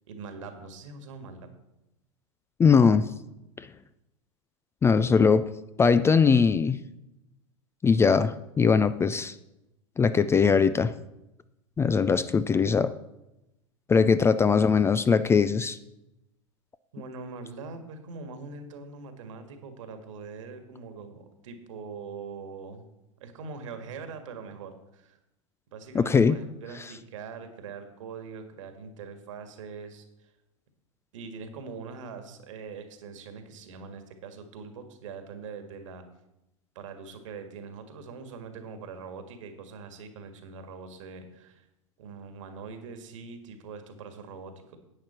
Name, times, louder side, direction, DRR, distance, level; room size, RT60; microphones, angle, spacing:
voice 1, 0.1-1.5 14.2-14.3 16.9-22.8 23.2-25.2 25.7-30.3 31.1-36.1 36.7-41.7 42.0-44.8, right 5 dB, 65° right, 7 dB, 1.8 m, -42 dB
voice 2, 2.6-3.1 3.6-3.7 4.8-5.5 5.8-6.8 7.8-9.3 10.0-10.9 11.8-12.9 13.9-15.8 25.9-26.4, left 5 dB, 15° left, 14 dB, 0.4 m, -21 dB
10.5 x 8.8 x 4.3 m, 0.89 s
hypercardioid pair, 95°, 17 cm